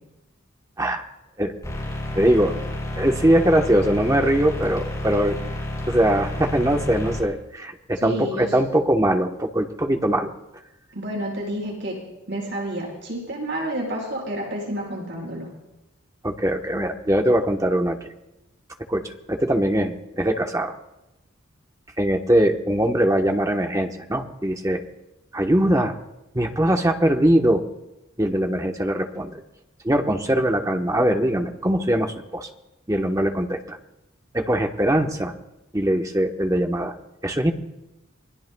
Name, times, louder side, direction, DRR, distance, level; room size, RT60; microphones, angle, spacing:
sound 1, 1.6-7.2, left 1 dB, 15° left, 6.3 m, -30 dB
voice 1, 2.1-2.5 3.0-5.4 5.8-10.3 16.2-18.0 18.9-20.7 22.0-24.8 25.3-25.9 26.3-27.6 28.2-29.4 29.8-32.5 32.9-33.8 34.3-35.3 35.7-36.9 37.2-37.5, right 1 dB, 15° right, 4 dB, 1.1 m, -21 dB
voice 2, 8.0-8.5 10.9-12.0 12.3-15.5, right 1 dB, 55° right, -3 dB, 7.5 m, -29 dB
27.5 x 21.5 x 2.3 m, 0.96 s
head